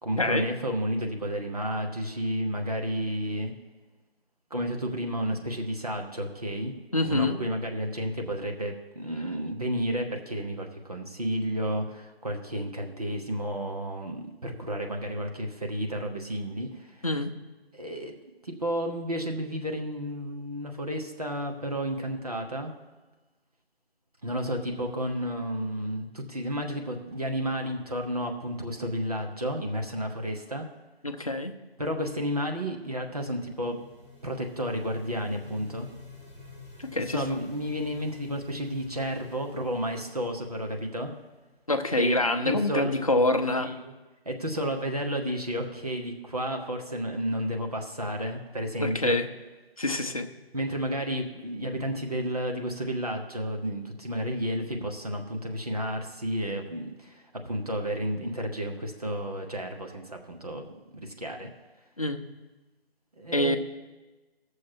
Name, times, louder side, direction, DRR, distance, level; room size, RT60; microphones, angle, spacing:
voice 1, 0.0-3.5 4.5-6.7 7.0-17.0 17.7-18.1 18.4-22.7 24.2-30.7 31.8-33.8 34.2-35.9 37.1-41.1 41.9-42.2 42.4-42.9 43.6-43.9 44.3-49.2 50.5-60.6 60.9-61.5 63.2-63.6, equal, 40° right, 2 dB, 0.9 m, -31 dB
voice 2, 6.9-7.4 17.0-17.3 31.0-31.5 36.8-37.2 41.7-43.7 48.8-49.3 49.8-50.3 62.0-62.2 63.3-63.6, left 2 dB, 35° left, 6 dB, 0.6 m, -26 dB
sound 1, 32.8-41.6, left 3 dB, ahead, 1.5 m, -49 dB
15.0 x 6.5 x 4.5 m, 1.2 s
figure-of-eight pair, 160°, 31 cm